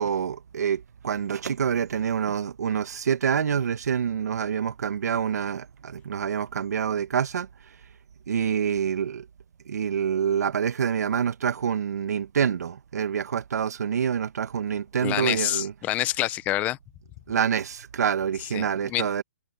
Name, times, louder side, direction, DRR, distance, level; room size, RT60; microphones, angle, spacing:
voice 1, 0.0-7.5 8.3-9.3 9.6-15.7 17.3-19.2, right 7 dB, 65° right, 1.6 m, -26 dB
voice 2, 15.0-16.8 18.5-19.1, left 15 dB, 15° left, 0.8 m, -27 dB
hypercardioid pair, 160°, 9 cm